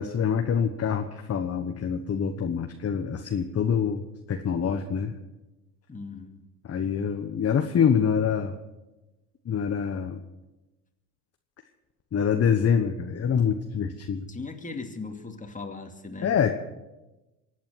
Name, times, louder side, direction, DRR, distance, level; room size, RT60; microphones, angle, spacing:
voice 1, 0.0-5.1 6.6-8.6 9.5-10.2 12.1-14.3 16.2-16.6, left 7 dB, 30° left, 6 dB, 1.2 m, -25 dB
voice 2, 5.9-6.4 14.3-16.4, left 3 dB, 15° left, 4 dB, 2.4 m, -38 dB
24.0 x 8.7 x 6.4 m, 1.1 s
hypercardioid pair, 75°, 46 cm